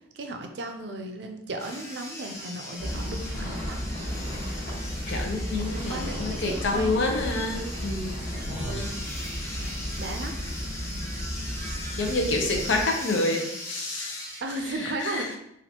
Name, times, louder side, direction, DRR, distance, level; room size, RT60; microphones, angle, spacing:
voice 1, 0.1-3.8 5.4-7.4 8.7-9.0 9.6-9.7 10.0-10.3 14.4-15.4, right 2 dB, 60° right, 5 dB, 0.5 m, -35 dB
sound 1, 1.6-14.4, left 1 dB, 15° left, 0.6 m, -39 dB
sound 2, 2.8-12.8, equal, 45° left, 1.2 m, -33 dB
voice 2, 5.1-8.2 12.0-14.2 14.8-15.2, left 2 dB, 70° left, 2 dB, 0.7 m, -28 dB
4.2 x 2.5 x 2.8 m, 0.76 s
head